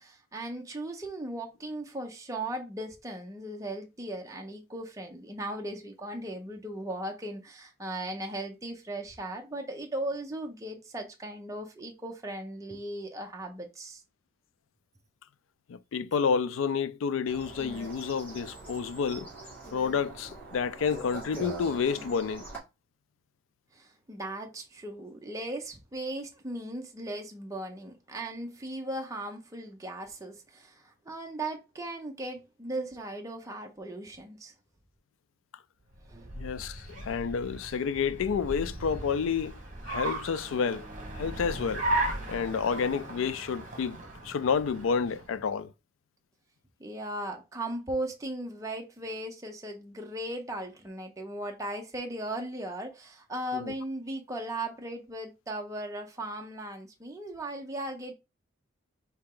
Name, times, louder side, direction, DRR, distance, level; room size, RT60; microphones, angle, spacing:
voice 1, 0.0-14.0 23.7-34.5 36.1-36.3 46.8-58.1, right 1 dB, 15° right, 0.6 m, -37 dB
voice 2, 15.7-19.3 19.7-22.5 36.4-39.6 39.9-40.9 41.2-41.9 42.3-44.0 44.2-45.7 53.5-53.7, left 6 dB, 80° left, 0.4 m, -29 dB
sound 1, 17.2-22.6, right 3 dB, 10° left, 2.0 m, -43 dB
Car, 35.9-45.5, right 2 dB, 40° right, 1.3 m, -36 dB
4.3 x 2.8 x 3.7 m
head